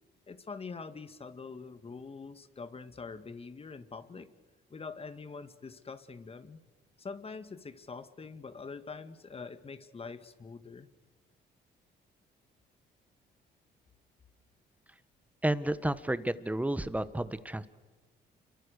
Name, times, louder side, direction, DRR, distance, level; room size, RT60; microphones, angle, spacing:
voice 1, 0.3-4.3 4.7-6.6 7.0-10.9, left 4 dB, 30° left, 11 dB, 1.9 m, -44 dB
voice 2, 15.4-17.7, right 1 dB, 10° right, 14 dB, 1.3 m, -31 dB
29.0 x 23.5 x 6.7 m, 1.3 s
cardioid pair, 85°, 19 cm